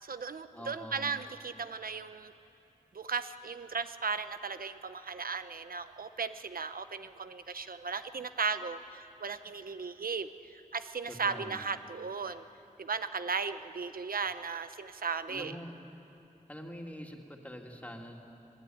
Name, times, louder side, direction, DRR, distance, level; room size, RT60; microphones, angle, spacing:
voice 1, 0.0-2.3 2.9-12.4 12.8-15.6, right 5 dB, 80° right, 11 dB, 0.9 m, -36 dB
voice 2, 0.5-1.1 11.1-11.7 15.3-15.7 16.5-18.2, equal, 10° left, 1 dB, 2.6 m, -44 dB
24.5 x 19.0 x 9.4 m, 3.0 s
wide cardioid pair, 90°, 15 cm